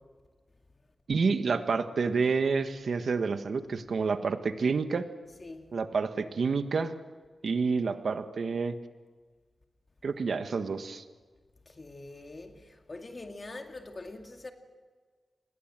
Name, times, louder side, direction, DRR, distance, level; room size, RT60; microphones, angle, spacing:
voice 1, 1.1-5.1 5.7-6.9 7.4-8.7 10.0-11.0, right 4 dB, 75° right, 1.5 m, -29 dB
voice 2, 5.4-5.7 11.7-14.5, left 2 dB, 35° left, 2.3 m, -44 dB
30.0 x 21.5 x 7.6 m
wide cardioid pair, 110°, 0 cm